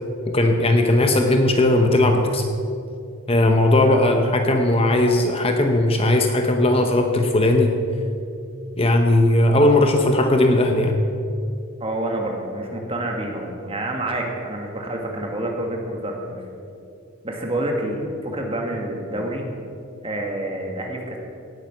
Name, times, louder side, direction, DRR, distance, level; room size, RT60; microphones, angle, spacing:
voice 1, 0.3-2.4 3.3-7.7 8.8-11.0, left 1 dB, 25° left, 4 dB, 0.8 m, -18 dB
voice 2, 11.8-16.4 17.2-19.4 20.0-21.2, right 1 dB, 25° right, 1 dB, 1.9 m, -28 dB
17.5 x 8.9 x 6.0 m, 2.6 s
head